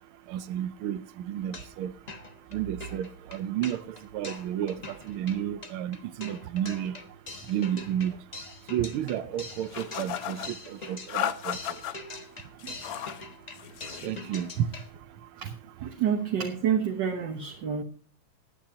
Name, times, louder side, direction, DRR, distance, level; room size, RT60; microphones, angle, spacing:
voice 1, 0.3-1.9 2.5-7.0 7.5-8.2 8.7-11.6 14.0-14.7 15.4-15.9, right 10 dB, 80° right, 1.5 m, -32 dB
sound 1, 1.4-1.8 2.1-14.9, left 2 dB, 35° left, 0.7 m, -44 dB
sound 2, 9.7-10.5 11.1-11.9 12.6-13.2 13.5-14.1, left 10 dB, 65° left, 0.9 m, -34 dB
voice 2, 15.8-17.8, right 8 dB, 60° right, 1.8 m, -28 dB
20.5 x 9.2 x 2.8 m
omnidirectional pair, 2.3 m